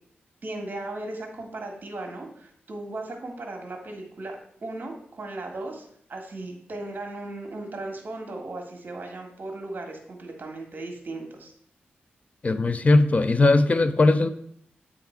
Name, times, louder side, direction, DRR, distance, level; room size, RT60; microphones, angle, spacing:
voice 1, 0.4-11.5, right 2 dB, 50° right, 3 dB, 1.6 m, -37 dB
voice 2, 12.4-14.3, left 2 dB, 35° left, 11 dB, 0.4 m, -19 dB
8.6 x 3.6 x 4.5 m, 0.67 s
cardioid pair, 85°, 4 cm